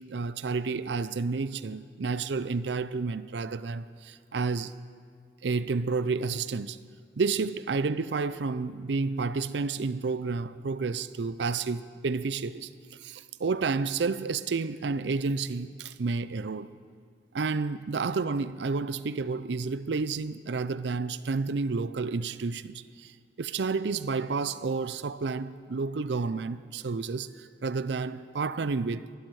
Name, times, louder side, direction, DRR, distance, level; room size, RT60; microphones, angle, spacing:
voice 1, 0.0-4.8 5.4-6.8 7.2-12.7 13.0-16.7 17.3-23.1 23.4-29.0, right 4 dB, 85° right, 0.5 m, -30 dB
24.0 x 12.0 x 4.8 m
head